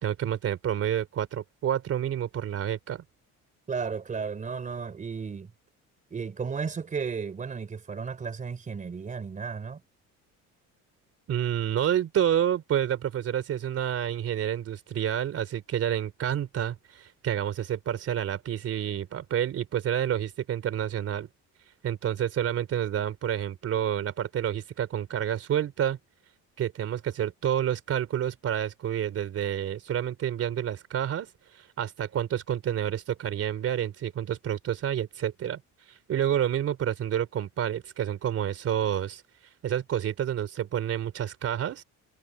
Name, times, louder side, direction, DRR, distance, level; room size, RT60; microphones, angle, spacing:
voice 1, 0.0-3.0 11.3-21.3 21.8-26.0 26.6-35.6 35.9-39.2 39.6-41.8, right 10 dB, 45° right, 3.3 m, -29 dB
voice 2, 3.7-5.5 6.1-9.8, right 5 dB, 25° right, 3.8 m, -34 dB
cardioid pair, 165°, 34 cm